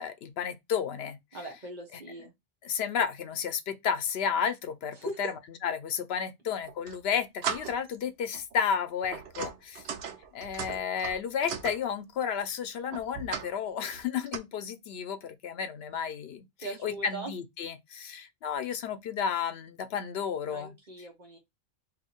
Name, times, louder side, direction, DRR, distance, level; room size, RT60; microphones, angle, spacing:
voice 1, 0.0-1.2 1.9-2.0 2.6-5.3 5.6-9.8 10.3-20.7, left 7 dB, 75° left, 0.8 m, -32 dB
voice 2, 1.3-2.3 5.0-5.3 16.6-17.3 20.5-21.4, right 1 dB, 50° right, 1.1 m, -40 dB
sound 1, 6.6-7.0 7.4-8.0 8.3-8.5 9.0-11.8 12.9-13.5 13.9-14.4, right 7 dB, 85° right, 0.9 m, -37 dB
2.7 x 2.6 x 4.2 m
omnidirectional pair, 1.0 m